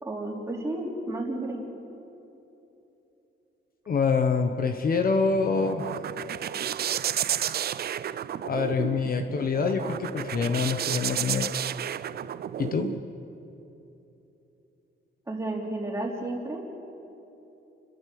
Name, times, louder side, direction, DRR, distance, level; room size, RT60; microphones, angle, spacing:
voice 1, 0.0-1.6 15.3-16.6, right 2 dB, 15° right, -2 dB, 3.4 m, -32 dB
voice 2, 3.9-5.9 8.4-11.5 12.6-12.9, left 5 dB, 45° left, 6 dB, 1.1 m, -26 dB
sound 1, 5.1-13.0, right 10 dB, 50° right, 0.5 m, -32 dB
30.0 x 12.5 x 7.7 m, 3.0 s
wide cardioid pair, 160°, 20 cm